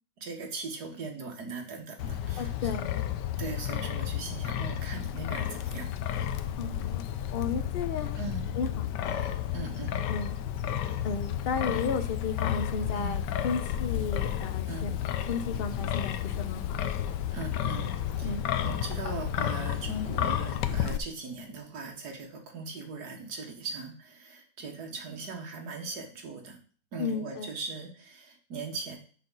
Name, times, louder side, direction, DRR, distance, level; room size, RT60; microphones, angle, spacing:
voice 1, 0.2-2.7 3.4-5.9 8.2-8.5 9.1-10.0 10.8-11.0 12.9-13.2 14.7-15.0 17.3-18.4 18.6-26.6 26.9-29.0, right 4 dB, 65° right, 2 dB, 1.9 m, -39 dB
Wind, 2.0-21.0, left 10 dB, 85° left, 1.3 m, -32 dB
voice 2, 2.4-2.8 6.6-7.0 7.3-8.2 8.6-9.2 10.1-10.4 11.0-14.9 15.3-16.8 18.2-18.4 27.0-27.5, left 5 dB, 60° left, 9 dB, 0.6 m, -34 dB
6.7 x 5.9 x 3.9 m, 0.43 s
omnidirectional pair, 1.8 m